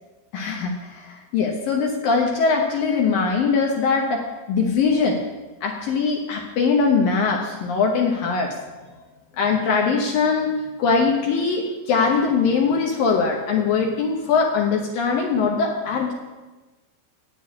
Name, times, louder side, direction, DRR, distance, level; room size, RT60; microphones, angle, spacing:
voice 1, 0.3-4.2 4.5-5.2 5.6-8.7 9.4-10.5 10.8-16.1, left 5 dB, 70° left, 0 dB, 2.4 m, -21 dB
9.3 x 7.4 x 8.4 m, 1.2 s
omnidirectional pair, 5.1 m